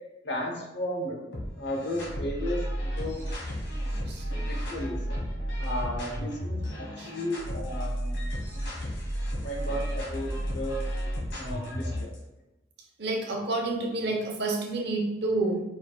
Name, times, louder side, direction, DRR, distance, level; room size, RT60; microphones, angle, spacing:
voice 1, 0.2-1.2 1.6-3.2 4.4-5.2 5.6-8.2 9.4-10.8 11.4-12.1, left 1 dB, 65° left, 0 dB, 1.0 m, -34 dB
sound 1, 1.3-12.2, equal, 80° left, 1.5 m, -33 dB
voice 2, 13.0-15.6, right 2 dB, 55° right, 0 dB, 0.9 m, -29 dB
4.7 x 4.3 x 2.3 m, 1.0 s
head